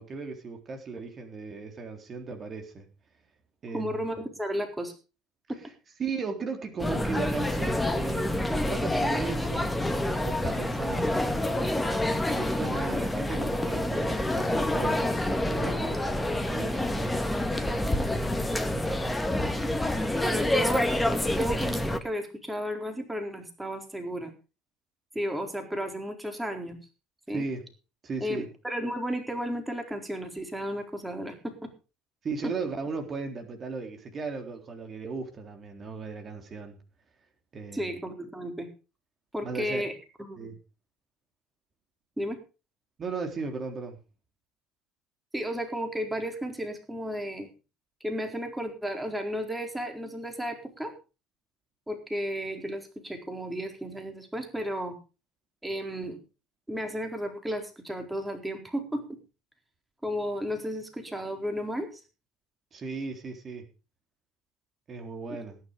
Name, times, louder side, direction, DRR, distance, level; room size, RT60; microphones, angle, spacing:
voice 1, 0.0-2.9 3.6-4.1 6.0-9.7 10.2-11.4 12.3-17.1 27.3-27.6 28.0-28.4 32.2-36.8 37.5-37.9 39.4-39.8 40.4-40.6 43.0-44.0 62.7-63.7 64.9-65.6, right 4 dB, 35° right, 4 dB, 3.9 m, -36 dB
voice 2, 3.7-4.9 5.5-5.6 20.2-20.9 21.4-24.3 25.1-26.8 27.3-27.4 28.2-31.7 37.7-38.7 39.3-39.9 40.2-40.5 42.2-42.4 45.3-47.5 48.0-50.9 51.9-55.0 55.6-56.2 56.7-59.2 60.0-62.0 65.3-65.4, equal, 10° right, 4 dB, 4.2 m, -33 dB
sound 1, 6.8-22.0, left 1 dB, 10° left, 2.2 m, -27 dB
17.0 x 10.0 x 5.2 m, 0.33 s
hypercardioid pair, 70°, 0 cm